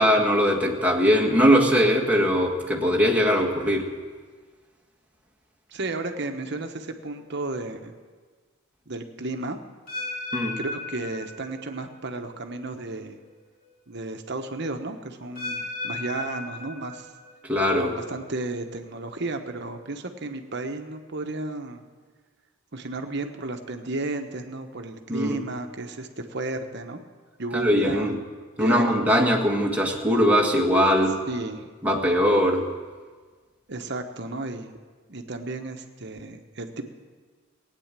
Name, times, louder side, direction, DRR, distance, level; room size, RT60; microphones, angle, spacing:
voice 1, 0.0-3.9 10.3-10.6 17.5-17.9 25.1-25.4 27.5-28.1 28.6-31.2 31.8-32.6, equal, 5° right, -1 dB, 1.7 m, -21 dB
voice 2, 5.7-7.9 8.9-9.6 10.6-13.2 13.9-17.1 17.7-21.8 22.7-27.0 27.4-28.1 28.6-29.3 31.3-31.7 33.7-34.7 35.1-36.9, right 2 dB, 55° right, 6 dB, 1.2 m, -33 dB
sound 1, 9.9-11.9 12.1-12.6 13.2-13.3 15.3-17.3 17.6-18.1 18.7-18.8, left 3 dB, 45° left, 3.7 m, -35 dB
17.0 x 9.4 x 7.5 m, 1.5 s
head